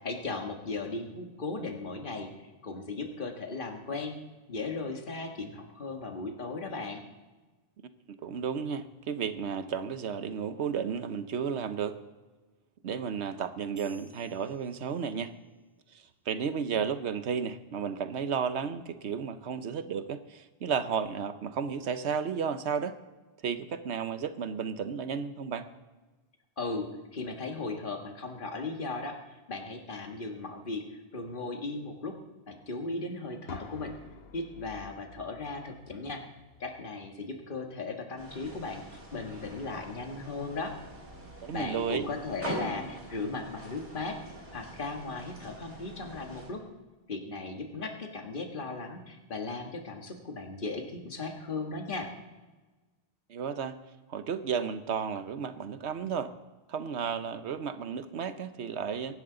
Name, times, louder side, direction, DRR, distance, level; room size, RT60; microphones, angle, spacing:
voice 1, 0.0-4.1 4.5-7.0 26.6-32.2 32.5-33.9 34.3-36.2 36.6-40.8 41.5-46.6 47.1-52.1, left 3 dB, 50° left, 3 dB, 1.7 m, -37 dB
voice 2, 8.1-12.0 12.8-15.3 15.9-23.0 23.4-25.7 41.4-42.1 53.3-53.8 54.1-56.3 56.7-59.2, right 6 dB, 90° right, 11 dB, 1.1 m, -33 dB
sound 1, 13.8-15.6, right 2 dB, 40° right, 2.4 m, -60 dB
sound 2, 33.5-37.4, left 4 dB, 70° left, 1.1 m, -50 dB
sound 3, 38.2-46.5, right 1 dB, 55° right, 3.9 m, -44 dB
23.0 x 11.0 x 3.9 m, 1.2 s
omnidirectional pair, 1.1 m